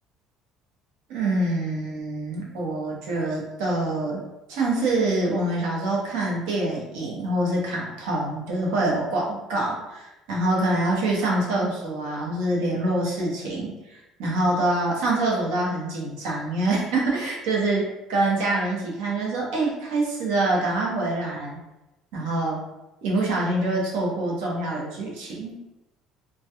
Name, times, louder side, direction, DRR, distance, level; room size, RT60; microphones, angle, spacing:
voice 1, 1.1-4.2 4.5-21.6 22.1-22.6 23.0-25.5, right 2 dB, 85° right, -3 dB, 0.8 m, -25 dB
2.2 x 2.2 x 2.8 m, 0.98 s
cardioid pair, 170°, 0 cm